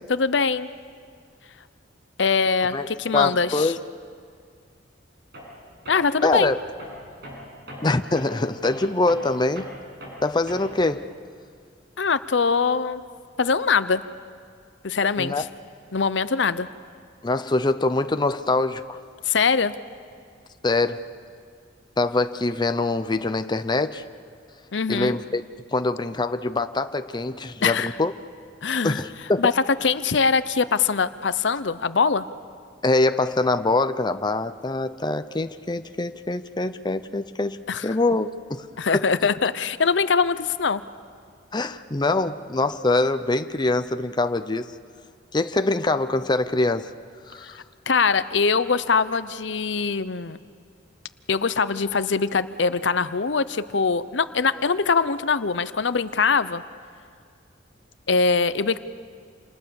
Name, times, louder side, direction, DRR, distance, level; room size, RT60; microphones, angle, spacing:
voice 1, 0.1-0.7 2.2-3.7 5.9-6.5 12.0-13.0 13.4-14.0 14.8-15.4 15.9-16.7 19.2-19.7 24.7-25.2 27.6-27.9 28.6-29.0 29.4-29.5 29.8-32.2 37.7-37.9 38.8-40.8 47.9-50.4 51.3-56.6 58.1-58.8, left 5 dB, 70° left, 14 dB, 0.8 m, -22 dB
voice 2, 3.1-3.8 6.2-6.6 7.8-9.7 10.2-11.1 15.2-15.4 17.2-19.0 20.6-21.0 22.0-24.0 24.9-25.4 25.7-28.1 28.8-29.4 32.8-37.6 37.8-38.7 38.9-39.0 41.5-44.7 45.3-46.9 47.3-47.6, left 2 dB, 25° left, 9 dB, 0.7 m, -24 dB
Tools, 5.3-5.6 5.9-10.9, equal, 60° right, 8.0 m, -41 dB
28.5 x 28.0 x 7.1 m, 2.1 s
head